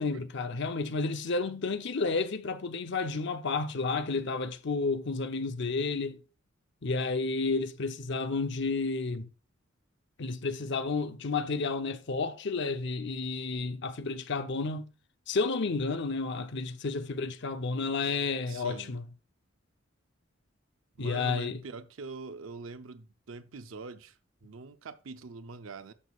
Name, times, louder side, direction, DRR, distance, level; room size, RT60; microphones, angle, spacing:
voice 1, 0.0-6.2 6.8-9.3 10.2-14.9 15.3-19.0 21.0-21.6, left 4 dB, 60° left, 0.7 m, -31 dB
voice 2, 18.5-19.0 21.0-25.9, right 4 dB, 75° right, 0.6 m, -44 dB
12.5 x 6.3 x 2.4 m
head